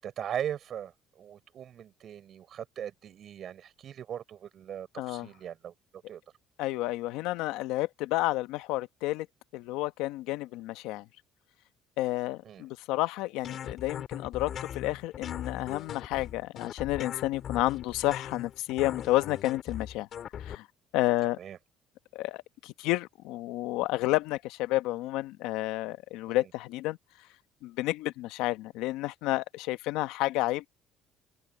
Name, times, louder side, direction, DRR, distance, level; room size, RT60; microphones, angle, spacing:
voice 1, 0.0-6.2 12.4-12.6 21.4-21.6 26.3-26.4, right 9 dB, 55° right, 6.1 m, -39 dB
voice 2, 5.0-5.3 6.6-9.3 9.5-11.0 12.0-20.1 20.4-20.7 20.9-21.4 22.1-27.0 27.6-30.7, left 17 dB, 85° left, 1.1 m, -30 dB
sound 1, 13.4-20.6, left 9 dB, 55° left, 2.9 m, -40 dB
open air
cardioid pair, 95°, 0 cm